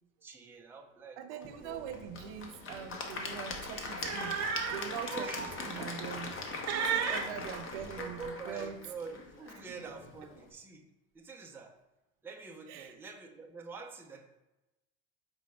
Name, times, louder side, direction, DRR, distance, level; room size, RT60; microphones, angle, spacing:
voice 1, 0.2-2.0 5.0-5.9 6.8-7.3 8.0-10.8 11.1-11.7 12.2-14.3, right 4 dB, 5° right, 1 dB, 0.4 m, -46 dB
voice 2, 1.2-4.4 4.7-6.4 6.7-8.8 9.8-9.9 12.7-12.9, right 8 dB, 85° right, 7 dB, 0.5 m, -43 dB
Applause / Crowd, 1.4-10.5, left 3 dB, 35° left, 0.7 m, -41 dB
sound 1, 1.8-1.9 2.2-2.4 3.5-4.9 5.4-5.5 6.1-6.4 6.7-8.3, right 7 dB, 45° right, 0.7 m, -34 dB
4.7 x 2.1 x 4.1 m, 1.0 s
supercardioid pair, 105°, 35 cm